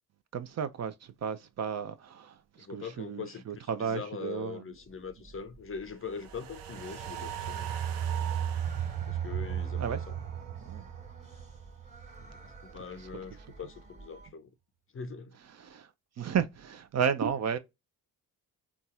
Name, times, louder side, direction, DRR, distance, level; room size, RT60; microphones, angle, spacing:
voice 1, 0.3-0.9 1.2-2.3 2.7-4.6 9.8-10.0 10.6-10.8 15.5-15.9 16.2-17.6, right 7 dB, 40° right, 0.5 m, -32 dB
voice 2, 2.6-7.7 9.1-10.2 12.2-14.5 14.9-15.4, left 6 dB, 30° left, 0.6 m, -42 dB
sound 1, 4.7-14.3, right 3 dB, 15° right, 1.5 m, -52 dB
sound 2, 6.2-12.6 12.9-13.0, right 9 dB, 85° right, 0.6 m, -35 dB
4.0 x 2.3 x 2.4 m
hypercardioid pair, 45°, 44 cm